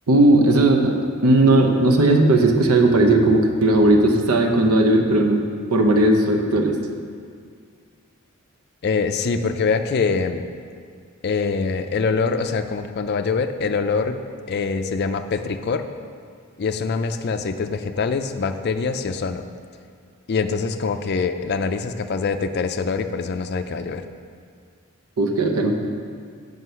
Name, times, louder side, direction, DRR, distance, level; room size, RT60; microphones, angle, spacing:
voice 1, 0.1-1.0 1.2-5.4 5.7-6.8 25.2-25.9, right 2 dB, 85° right, 4 dB, 0.8 m, -17 dB
voice 2, 8.8-10.5 11.2-14.2 14.5-15.8 16.6-19.5 20.3-24.0, left 4 dB, 45° left, 8 dB, 0.4 m, -24 dB
7.9 x 5.3 x 5.5 m, 2.1 s
head